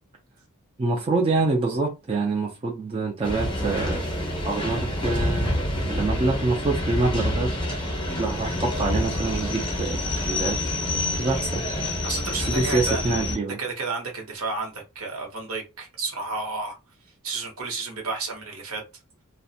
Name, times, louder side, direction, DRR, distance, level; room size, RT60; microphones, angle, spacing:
voice 1, 0.8-7.5 8.1-10.0 10.3-10.6 11.2-11.6 12.5-13.6, right 3 dB, 25° right, 0.4 m, -26 dB
sound 1, 3.2-13.4, left 1 dB, 25° left, 0.8 m, -27 dB
voice 2, 12.0-13.1 13.6-16.8 17.2-18.8, right 3 dB, 65° right, 0.9 m, -31 dB
2.4 x 2.1 x 2.7 m
head